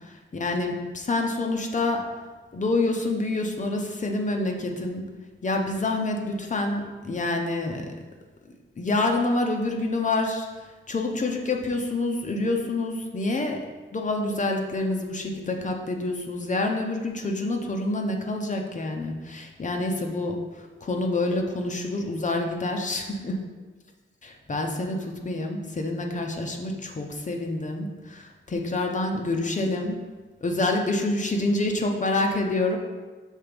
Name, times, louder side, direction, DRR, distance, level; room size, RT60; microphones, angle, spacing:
voice 1, 0.3-2.0 2.5-5.0 5.4-7.8 8.5-10.5 10.9-13.6 13.9-23.4 24.2-29.9 30.4-32.8, left 2 dB, 35° left, 2 dB, 0.8 m, -27 dB
6.3 x 3.9 x 5.2 m, 1.3 s
wide cardioid pair, 130°, 21 cm